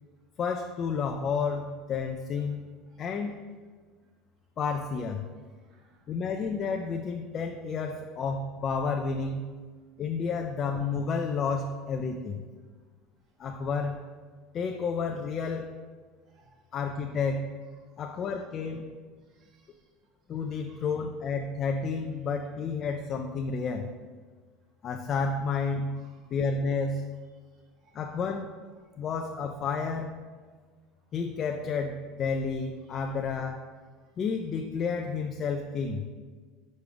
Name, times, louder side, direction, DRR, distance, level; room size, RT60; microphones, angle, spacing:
voice 1, 0.4-2.7 3.0-3.4 4.6-5.2 6.1-9.4 10.0-12.4 13.4-14.0 14.5-15.7 16.7-17.5 18.0-18.8 20.3-23.9 24.8-26.0 26.3-27.1 27.9-28.5 29.0-30.1 31.1-33.6 34.2-36.0, left 5 dB, 35° left, 3 dB, 0.4 m, -31 dB
voice 2, 5.7-6.1 16.3-17.3 17.9-18.0 19.3-19.8 20.7-20.8 25.9-26.2 27.8-28.4 32.8-33.1, right 3 dB, 45° right, 2 dB, 1.1 m, -64 dB
5.3 x 4.7 x 5.0 m, 1.5 s
cardioid pair, 145°, 0 cm